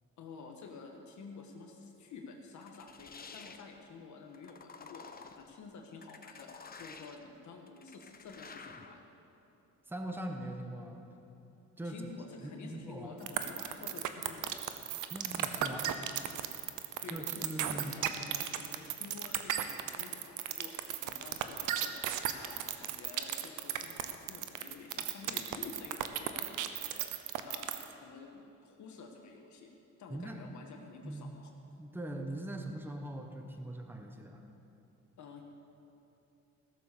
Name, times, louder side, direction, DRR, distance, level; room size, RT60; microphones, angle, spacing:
voice 1, 0.2-9.1 11.8-14.5 15.5-16.4 17.0-27.1 27.4-29.7 30.0-31.5 35.2-35.4, left 4 dB, 70° left, 2 dB, 1.5 m, -50 dB
sound 1, 2.6-3.7 4.3-5.5 6.0-7.3 7.7-9.0, left 5 dB, 30° left, 0.9 m, -50 dB
voice 2, 9.9-11.0 11.8-12.0 12.4-13.1 15.1-15.9 17.1-17.9 30.1-30.4 31.0-31.4 31.8-34.4, right 1 dB, 5° right, 3 dB, 1.2 m, -41 dB
sound 2, 13.3-27.9, right 12 dB, 90° right, 0.8 m, -35 dB
16.0 x 6.9 x 6.9 m, 3.0 s
cardioid pair, 90°, 30 cm